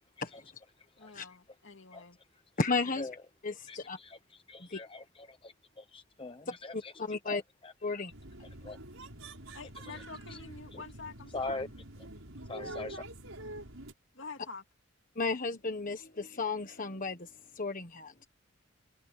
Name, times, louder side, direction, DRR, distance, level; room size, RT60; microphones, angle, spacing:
voice 1, 1.0-2.2 9.5-11.7 14.1-14.6, left 4 dB, 65° left, 2.7 m, -47 dB
voice 2, 2.6-3.1 3.4-4.0 4.6-4.8 6.5-7.4 7.8-8.1 15.2-17.3 17.5-18.1, left 3 dB, 40° left, 1.4 m, -34 dB
voice 3, 3.7-4.2 4.5-7.7 8.6-8.8 9.9-10.0 10.3-10.4 10.7-10.8 11.3-11.7 12.5-13.0, left 3 dB, 25° left, 0.9 m, -42 dB
sound 1, 8.1-13.9, right 1 dB, 90° right, 6.0 m, -46 dB
head